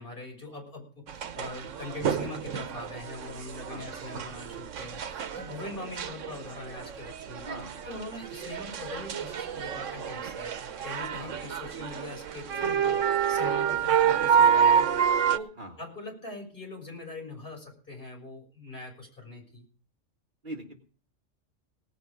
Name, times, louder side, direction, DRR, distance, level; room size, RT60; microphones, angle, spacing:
voice 1, 0.0-7.5 7.8-10.5 10.8-19.7, left 2 dB, 45° left, 1 dB, 6.6 m, -42 dB
sound 1, 1.1-15.4, right 8 dB, 85° right, 1.2 m, -28 dB
voice 2, 3.7-4.0 7.4-7.8 11.2-11.4 15.6-15.8 20.4-20.8, right 1 dB, 40° right, 2 dB, 2.0 m, -41 dB
18.0 x 9.0 x 5.1 m, 0.39 s
omnidirectional pair, 1.3 m